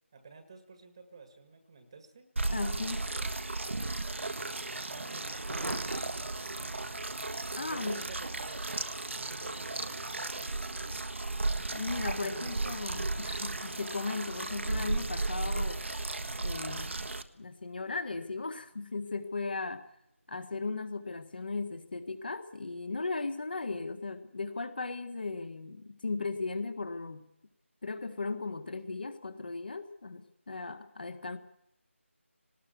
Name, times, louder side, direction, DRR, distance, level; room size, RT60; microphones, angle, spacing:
voice 1, 0.1-2.3 4.1-7.0 7.6-11.0 12.2-13.2, right 4 dB, 20° right, 8 dB, 1.7 m, -52 dB
sound 1, 2.4-17.2, right 2 dB, 65° right, 1.6 m, -35 dB
voice 2, 2.5-3.1 7.6-8.0 11.7-15.8 16.4-19.8 20.3-27.3 27.8-31.4, left 3 dB, 45° left, 9 dB, 1.9 m, -37 dB
Thunder / Rain, 4.0-20.7, right 1 dB, 90° right, 1.6 m, -49 dB
19.5 x 19.0 x 8.2 m, 0.75 s
figure-of-eight pair, 170°, 7 cm